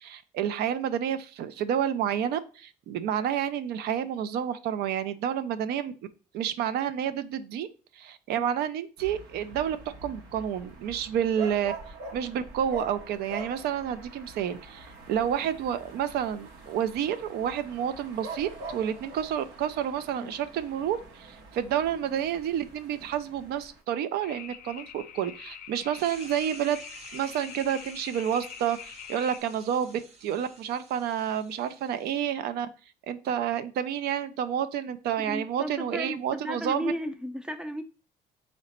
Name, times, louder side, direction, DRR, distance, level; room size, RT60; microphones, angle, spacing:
voice 1, 0.0-5.9 6.3-7.7 8.0-9.8 10.0-11.7 12.1-26.8 27.1-32.7 33.1-36.9, right 9 dB, 70° right, 0.4 m, -29 dB
sound 1, 9.0-23.8, right 3 dB, 85° right, 0.8 m, -44 dB
sound 2, 24.2-29.4, left 9 dB, 55° left, 0.5 m, -44 dB
sound 3, 26.0-32.1, right 3 dB, 40° right, 0.8 m, -51 dB
voice 2, 35.2-37.8, equal, 5° right, 0.4 m, -34 dB
3.8 x 2.1 x 4.1 m
cardioid pair, 110°, 17 cm